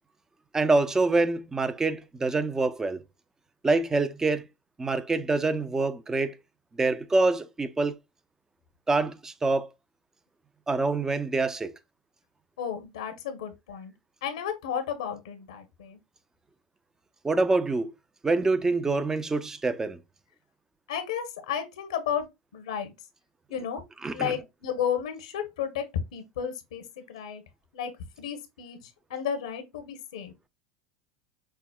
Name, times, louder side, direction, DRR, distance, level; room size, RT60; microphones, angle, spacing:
voice 1, 0.5-3.0 3.6-4.4 4.8-6.3 6.8-7.9 8.9-9.7 10.7-11.7 17.2-17.9 18.2-20.0 24.0-24.3, right 3 dB, 15° right, 0.5 m, -25 dB
voice 2, 12.6-13.9 14.2-16.0 20.9-22.9 23.5-23.8 24.1-27.4 27.7-27.9 28.2-30.3, left 8 dB, 80° left, 0.9 m, -33 dB
5.5 x 2.1 x 2.2 m
hypercardioid pair, 95°, 3 cm